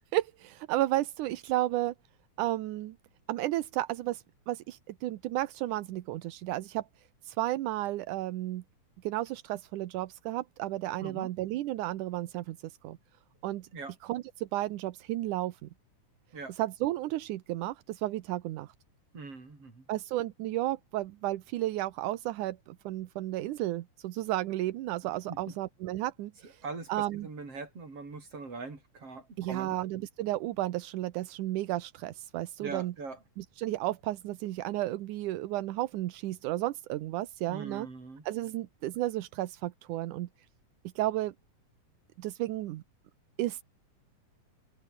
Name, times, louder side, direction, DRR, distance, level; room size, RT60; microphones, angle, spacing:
voice 1, 0.1-1.9 2.4-3.0 3.3-6.9 7.2-8.6 9.0-13.0 13.4-13.7 14.0-15.7 16.5-18.7 19.9-26.6 26.9-27.3 29.4-32.9 33.4-37.9 38.3-40.3 41.0-41.3 42.2-42.8 43.4-43.6, right 15 dB, 85° right, 2.4 m, -33 dB
voice 2, 19.1-19.8 25.3-25.6 26.4-29.8 32.6-33.2 37.5-38.2, right 3 dB, 50° right, 6.7 m, -42 dB
omnidirectional pair, 3.5 m